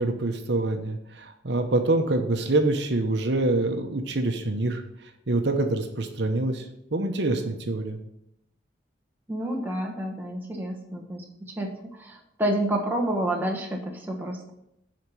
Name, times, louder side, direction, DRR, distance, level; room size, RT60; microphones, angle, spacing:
voice 1, 0.0-4.8 5.3-6.6 6.9-8.0, right 2 dB, 60° right, 4 dB, 0.9 m, -25 dB
voice 2, 9.3-14.5, right 1 dB, 10° right, -1 dB, 1.2 m, -29 dB
7.7 x 5.1 x 7.0 m, 0.81 s
head